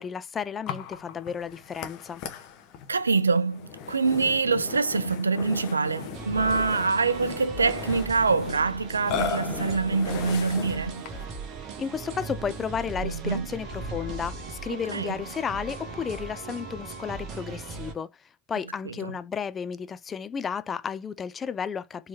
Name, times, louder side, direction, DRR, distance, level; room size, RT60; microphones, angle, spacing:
voice 1, 0.0-2.2 11.8-18.1 18.5-22.1, left 7 dB, 20° left, 0.3 m, -33 dB
Burping eructation, 0.7-11.4, left 6 dB, 40° left, 0.9 m, -37 dB
voice 2, 2.9-11.0 13.0-13.5 14.9-15.2 18.9-19.1, right 4 dB, 75° right, 0.4 m, -25 dB
sound 1, 6.1-17.9, right 4 dB, 35° right, 1.0 m, -39 dB
Wind instrument woodwind instrument, 13.6-17.3, left 1 dB, 90° left, 1.4 m, -47 dB
4.4 x 3.1 x 2.6 m
figure-of-eight pair, 90°, 0 cm